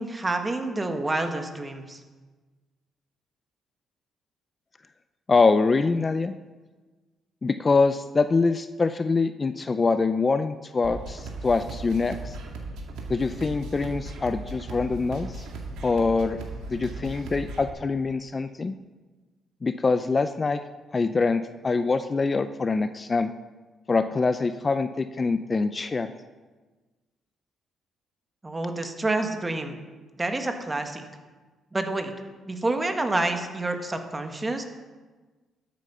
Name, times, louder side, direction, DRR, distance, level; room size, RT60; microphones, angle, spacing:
voice 1, 0.0-2.0 28.4-29.7 30.2-31.0 31.7-32.1 32.4-34.6, right 2 dB, 20° right, 5 dB, 1.5 m, -28 dB
voice 2, 5.3-6.3 7.4-12.4 13.1-15.5 15.8-16.4 16.7-18.8 19.6-20.6 20.9-23.3 23.9-26.1, left 4 dB, 30° left, 11 dB, 0.5 m, -24 dB
sound 1, 10.8-17.7, right 2 dB, 85° right, 2.0 m, -37 dB
13.0 x 8.4 x 5.6 m, 1.3 s
cardioid pair, 90°, 0 cm